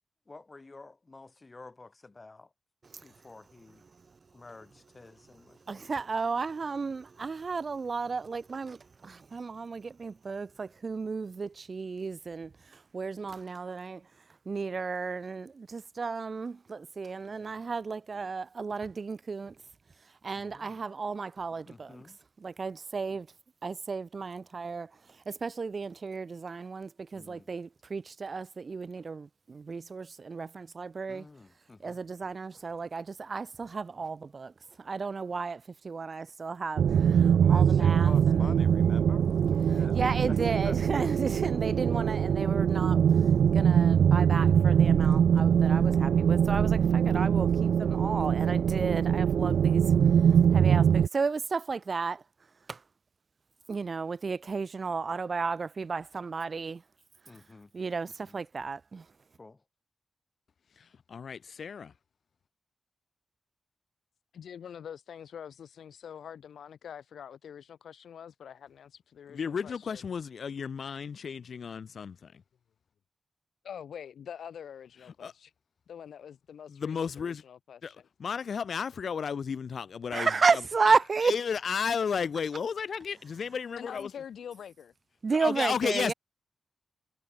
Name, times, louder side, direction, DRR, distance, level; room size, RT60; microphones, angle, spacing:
voice 1, 0.3-2.5 3.0-3.8 4.3-6.0 20.3-20.8 21.7-22.2 27.1-27.6 31.1-32.0 37.4-39.3 39.6-40.8 57.3-57.7 58.1-58.4 59.4-59.6, left 3 dB, 30° left, 5.8 m, -50 dB
voice 2, 5.7-12.5 12.9-14.0 14.5-19.5 20.2-22.0 22.4-23.3 23.6-24.9 25.3-31.2 31.8-34.5 34.8-38.1 39.9-43.0 43.5-49.8 50.5-52.2 52.7-52.8 53.7-56.8 57.7-59.0 80.1-81.3 85.2-86.1, right 4 dB, 45° right, 0.7 m, -33 dB
sound 1, 36.8-51.1, right 8 dB, 90° right, 0.5 m, -23 dB
voice 3, 60.8-61.9 69.3-72.3 75.2-75.3 76.7-77.4 77.8-77.9 78.2-80.9 81.2-84.1 85.4-86.1, left 6 dB, 65° left, 0.7 m, -33 dB
voice 4, 64.3-70.0 73.6-75.5 75.9-78.1 83.8-84.9, left 8 dB, 90° left, 2.0 m, -45 dB
cardioid pair, 85°, 0 cm